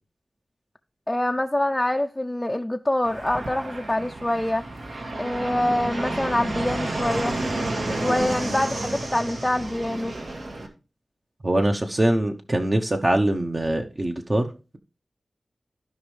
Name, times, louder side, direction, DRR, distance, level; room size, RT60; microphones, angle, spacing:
voice 1, 1.1-4.6 5.2-7.4 8.0-10.1, left 1 dB, 15° left, 0.5 m, -25 dB
Fixed-wing aircraft airplane, 3.0-10.7, right 2 dB, 75° right, 2.0 m, -31 dB
voice 2, 8.1-8.4 11.4-14.8, right 1 dB, 30° right, 0.9 m, -23 dB
15.5 x 5.2 x 3.3 m
wide cardioid pair, 95°, 0 cm